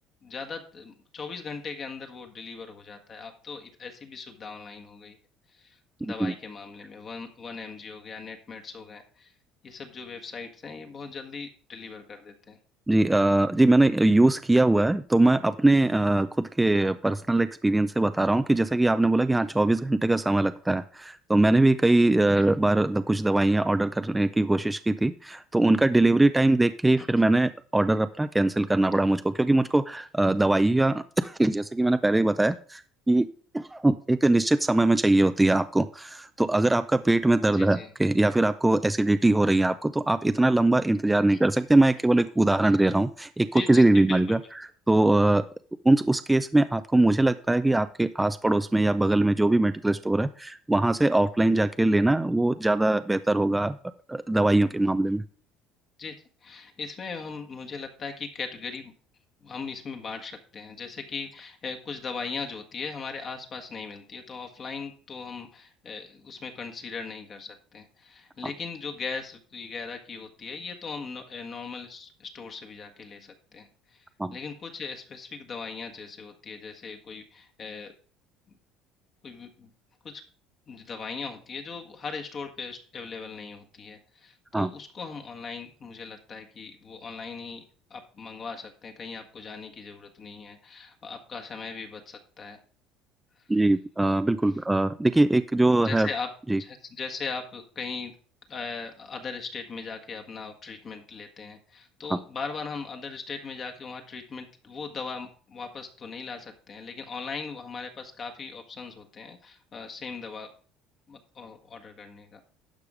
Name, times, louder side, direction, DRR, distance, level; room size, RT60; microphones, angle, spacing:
voice 1, 0.2-5.2 5.5-9.3 9.6-12.6 22.3-22.4 27.0-27.1 37.5-37.9 41.3-41.4 43.5-44.4 56.0-56.1 56.4-58.9 59.4-77.9 79.2-79.7 80.0-80.2 80.7-87.6 87.9-92.6 95.8-96.3 96.6-98.1 98.5-110.5 111.1-112.4, left 5 dB, 40° left, 4 dB, 1.5 m, -39 dB
voice 2, 6.0-6.3 12.9-32.8 33.1-33.3 33.5-44.4 44.9-45.4 45.8-53.8 54.1-55.2 74.2-74.4 84.5-84.7 93.5-96.1 96.5-96.6 102.1-102.2, right 2 dB, 10° right, 11 dB, 0.5 m, -22 dB
11.5 x 5.0 x 4.9 m, 0.41 s
cardioid pair, 110°, 0 cm